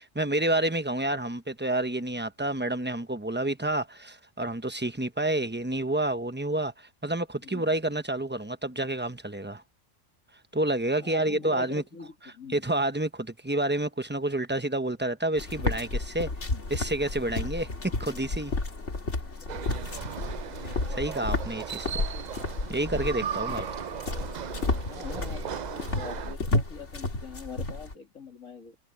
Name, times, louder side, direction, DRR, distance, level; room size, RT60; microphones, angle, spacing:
voice 1, 0.0-9.6 10.5-11.8 12.5-16.3 16.7-17.7 18.0-18.5 20.6-22.1 22.7-23.7, right 1 dB, 10° right, 0.8 m, -29 dB
voice 2, 7.4-7.7 11.0-12.6 16.4-16.6 18.0-18.3 24.9-28.8, left 5 dB, 80° left, 3.0 m, -43 dB
sound 1, 15.4-27.9, left 2 dB, 60° left, 2.9 m, -32 dB
sound 2, 19.5-26.4, right 8 dB, 70° right, 0.4 m, -37 dB
omnidirectional pair, 1.4 m